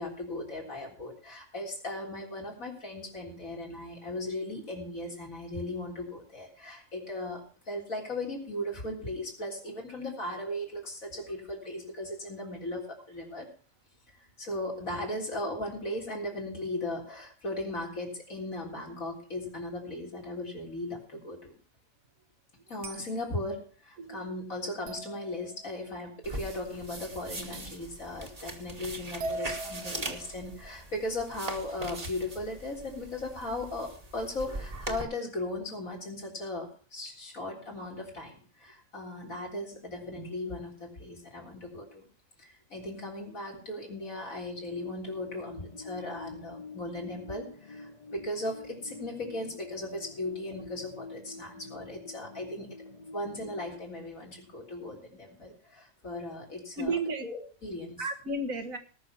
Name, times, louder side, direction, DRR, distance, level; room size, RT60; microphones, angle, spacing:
voice 1, 0.0-13.5 14.1-21.6 22.7-42.1 42.4-52.8 53.1-56.9 57.2-58.0, left 1 dB, 75° left, -1 dB, 4.1 m, -37 dB
sound 1, 22.8-23.2 24.9-25.9 28.0-28.1 29.2-30.4, right 2 dB, 50° right, 1.2 m, -39 dB
voice 2, 24.0-24.4 56.8-57.3 58.0-58.8, right 2 dB, 75° right, 7 dB, 1.9 m, -33 dB
sound 2, 26.2-35.0, right 2 dB, 30° right, 1.5 m, -41 dB
sound 3, 44.7-53.8, left 3 dB, 40° left, 0.6 m, -47 dB
18.5 x 6.4 x 5.8 m, 0.40 s
omnidirectional pair, 1.4 m